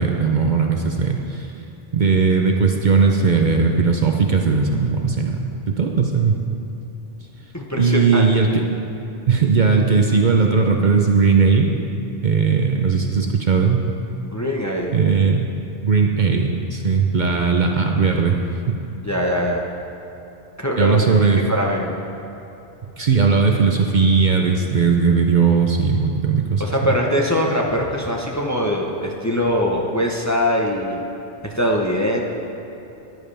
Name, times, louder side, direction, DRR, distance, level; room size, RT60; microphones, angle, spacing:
voice 1, 0.0-1.5 1.9-6.4 7.8-8.6 9.3-11.7 12.2-13.9 14.9-15.5 15.8-18.4 18.7-18.8 20.8-21.4 22.8-26.6, right 5 dB, 50° right, 2 dB, 0.7 m, -18 dB
voice 2, 7.5-8.2 14.3-15.0 19.0-19.6 20.6-21.1 21.5-22.0 26.6-31.0 31.4-32.2, equal, 15° left, -1 dB, 0.7 m, -22 dB
14.0 x 10.5 x 3.3 m, 2.9 s
omnidirectional pair, 1.1 m